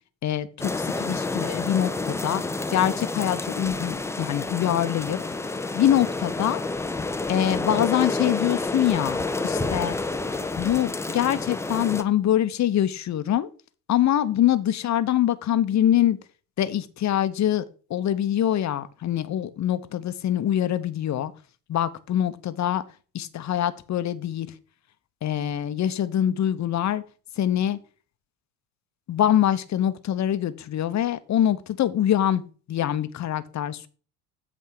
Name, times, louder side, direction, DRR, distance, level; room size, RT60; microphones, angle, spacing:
voice 1, 0.2-2.4 2.7-5.2 5.7-6.6 7.3-9.2 9.4-9.9 10.6-13.5 13.9-16.2 16.6-17.6 17.9-21.3 21.7-22.8 23.1-24.5 25.2-27.0 27.4-27.8 29.1-32.4 32.7-33.9, left 11 dB, 35° left, 13 dB, 0.9 m, -24 dB
sound 1, 0.6-12.0, left 3 dB, 5° left, 0.5 m, -29 dB
8.2 x 3.6 x 6.5 m, 0.38 s
hypercardioid pair, 85°, 47 cm